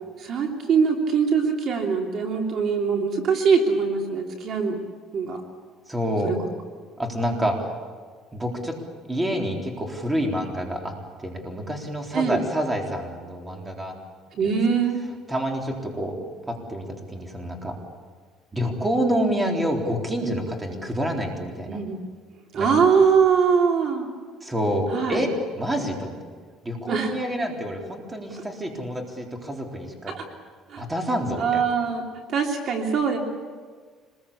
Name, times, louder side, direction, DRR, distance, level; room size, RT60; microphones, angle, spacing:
voice 1, 0.2-4.8 5.1-5.4 6.2-6.4 12.1-12.4 14.4-15.0 21.7-22.0 22.5-24.1 24.9-25.2 26.9-27.1 30.1-30.3 30.7-30.8 31.4-33.2, right 6 dB, 50° right, 2 dB, 3.1 m, -22 dB
voice 2, 5.9-6.4 7.0-7.7 8.3-8.8 9.1-13.9 15.3-16.2 16.5-17.8 18.5-21.8 22.5-22.8 24.4-26.2 26.6-30.1 30.8-31.6, equal, 15° right, 2 dB, 3.8 m, -27 dB
26.0 x 21.0 x 8.6 m, 1.6 s
cardioid pair, 135°, 0 cm